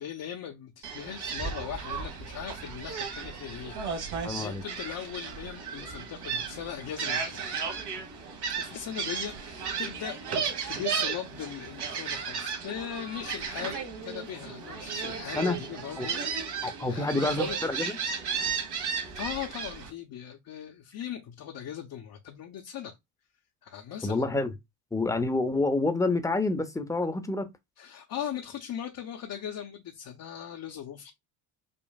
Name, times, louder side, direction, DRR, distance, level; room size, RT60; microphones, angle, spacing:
voice 1, 0.0-7.4 8.6-16.5 16.9-17.6 19.1-22.9 23.6-24.3 27.8-31.1, left 9 dB, 50° left, 0.9 m, -39 dB
Gull seagull, 0.8-19.9, right 6 dB, 55° right, 1.5 m, -34 dB
voice 2, 4.2-4.6 15.4-15.6 16.0-16.1 16.6-18.0 24.0-24.5 24.9-27.5, left 2 dB, 5° left, 0.8 m, -28 dB
5.3 x 2.5 x 2.3 m
supercardioid pair, 90°, 46 cm